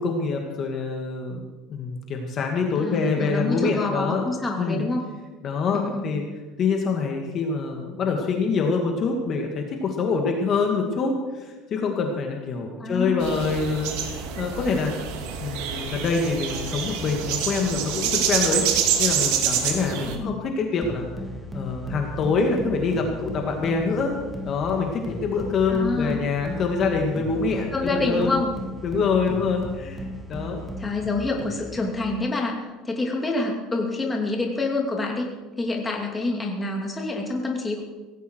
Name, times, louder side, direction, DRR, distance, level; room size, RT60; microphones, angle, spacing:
voice 1, 0.0-1.4 1.7-4.2 4.6-4.8 5.4-6.2 6.6-14.9 15.4-18.6 19.0-21.1 21.5-24.2 24.4-28.4 28.8-30.6, left 4 dB, 35° left, 2 dB, 2.2 m, -25 dB
voice 2, 2.8-5.0 5.7-6.1 12.8-13.4 20.0-20.4 25.7-26.3 27.7-28.5 30.8-32.6 32.8-35.3 35.6-37.8, left 2 dB, 15° left, 0 dB, 2.7 m, -27 dB
sound 1, 13.2-20.1, right 8 dB, 75° right, 2.6 m, -26 dB
sound 2, 20.8-32.3, equal, 5° right, 1.6 m, -36 dB
18.0 x 16.0 x 4.7 m, 1.2 s
cardioid pair, 150°, 0 cm